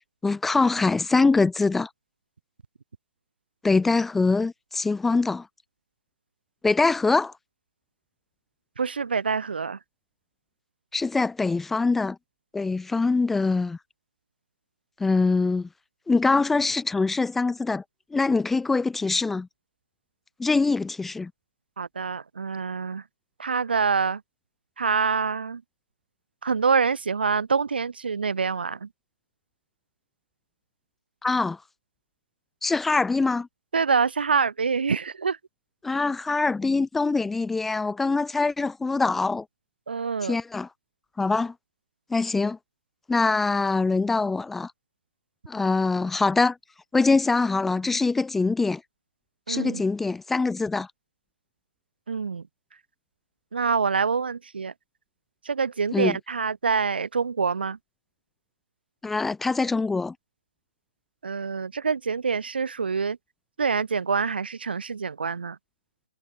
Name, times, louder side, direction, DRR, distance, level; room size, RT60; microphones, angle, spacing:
voice 1, 0.2-1.9 3.6-5.5 6.6-7.3 10.9-12.2 12.5-13.8 15.0-15.7 16.1-17.8 18.1-19.5 20.4-21.3 31.2-31.6 32.6-33.5 35.8-39.4 40.2-40.7 41.2-41.5 42.1-42.6 43.1-44.7 45.5-46.6 46.9-48.8 49.5-50.9 55.9-56.2 59.0-60.1, left 3 dB, 5° left, 0.6 m, -23 dB
voice 2, 8.8-9.8 21.8-23.0 23.4-24.2 24.8-25.6 26.4-28.9 33.7-35.4 39.9-40.4 49.5-49.8 52.1-52.4 53.5-54.7 55.4-57.8 61.2-63.2 63.6-65.6, right 5 dB, 85° right, 3.3 m, -26 dB
hypercardioid pair, 165°, 5 cm